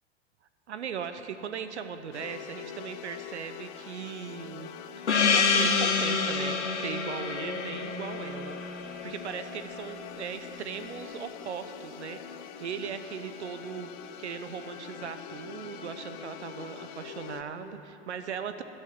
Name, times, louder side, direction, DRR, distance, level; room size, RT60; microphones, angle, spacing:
voice 1, 0.7-4.7 5.0-13.9 14.2-18.6, right 7 dB, 75° right, 10 dB, 0.9 m, -38 dB
sound 1, 2.1-17.4, left 9 dB, 50° left, 1.0 m, -44 dB
Gong, 5.1-9.8, left 5 dB, 85° left, 1.2 m, -28 dB
13.0 x 12.5 x 7.4 m, 2.9 s
figure-of-eight pair, 90°, 34 cm